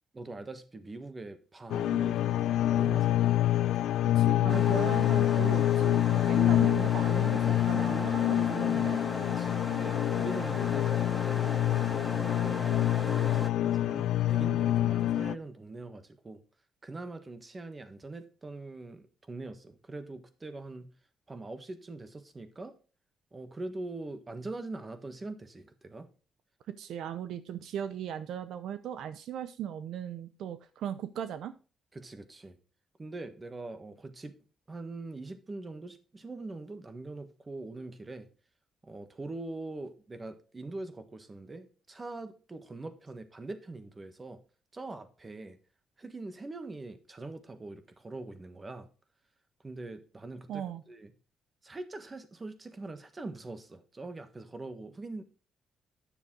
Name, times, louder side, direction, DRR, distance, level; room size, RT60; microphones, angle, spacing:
voice 1, 0.1-3.4 9.3-16.4 16.8-20.9 21.3-22.7 23.3-26.1 31.9-32.6 33.0-34.4 34.7-38.3 38.8-44.4 44.7-45.6 46.0-48.9 49.6-51.1 51.6-55.2, right 2 dB, 25° right, 1.4 m, -43 dB
sound 1, 1.7-15.3, left 13 dB, 80° left, 0.3 m, -26 dB
voice 2, 4.2-9.0 26.8-31.5 50.5-50.8, right 9 dB, 75° right, 0.6 m, -38 dB
sound 2, 4.5-13.5, equal, ahead, 0.7 m, -38 dB
10.0 x 6.7 x 3.8 m
cardioid pair, 90°, 0 cm